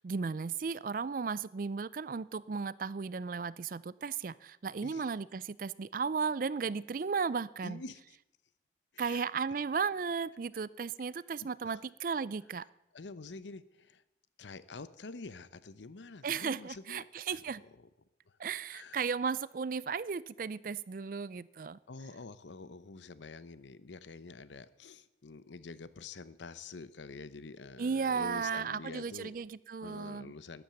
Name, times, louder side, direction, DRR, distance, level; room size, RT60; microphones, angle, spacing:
voice 1, 0.0-7.8 9.0-12.6 16.2-17.6 18.4-21.8 27.8-30.3, right 5 dB, 50° right, 20 dB, 0.4 m, -35 dB
voice 2, 7.6-8.2 8.9-9.3 11.4-11.8 12.9-14.0 14.4-17.9 18.3-18.4 18.7-19.0 21.9-29.4 29.8-30.6, left 3 dB, 90° left, 15 dB, 0.8 m, -47 dB
13.5 x 10.5 x 7.0 m, 0.90 s
head